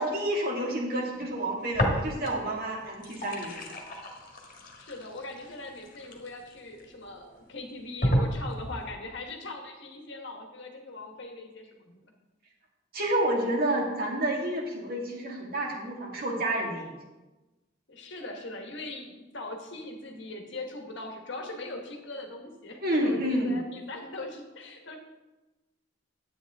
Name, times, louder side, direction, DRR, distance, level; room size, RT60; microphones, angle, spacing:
voice 1, 0.0-3.7 12.9-17.0 22.8-23.6, right 1 dB, 50° right, -1 dB, 2.0 m, -29 dB
sound 1, 1.7-2.5 2.8-6.8 7.4-7.5 8.0-8.9, equal, 45° left, 1.7 m, -31 dB
voice 2, 4.8-12.1 17.9-25.0, left 2 dB, 65° left, 3 dB, 1.4 m, -41 dB
10.0 x 8.8 x 3.6 m, 1.1 s
head